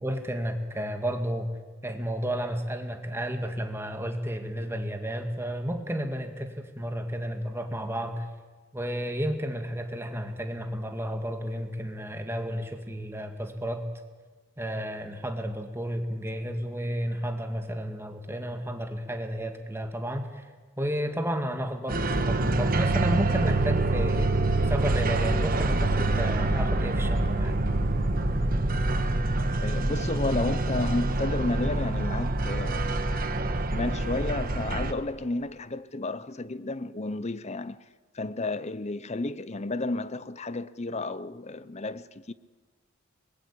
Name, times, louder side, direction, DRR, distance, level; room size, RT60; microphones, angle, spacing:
voice 1, 0.0-1.5 1.8-8.3 8.7-13.8 14.6-20.5 20.8-24.3 24.6-27.6, equal, 10° right, 2.1 m, -32 dB
sound 1, 21.9-34.9, right 2 dB, 40° right, 1.4 m, -26 dB
voice 2, 29.6-33.1 33.7-37.8 38.1-42.3, left 2 dB, 30° left, 0.7 m, -32 dB
24.0 x 21.0 x 8.5 m
head